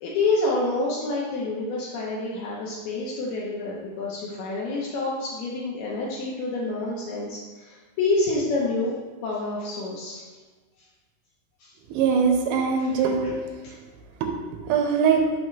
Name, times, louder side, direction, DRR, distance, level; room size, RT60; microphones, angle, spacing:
voice 1, 0.0-10.2 11.6-11.7, left 2 dB, 90° left, -5 dB, 2.1 m, -28 dB
voice 2, 11.9-13.8 14.2-14.3 14.7-15.2, right 6 dB, 85° right, 2 dB, 3.1 m, -22 dB
7.8 x 5.7 x 3.2 m, 1.3 s
omnidirectional pair, 5.6 m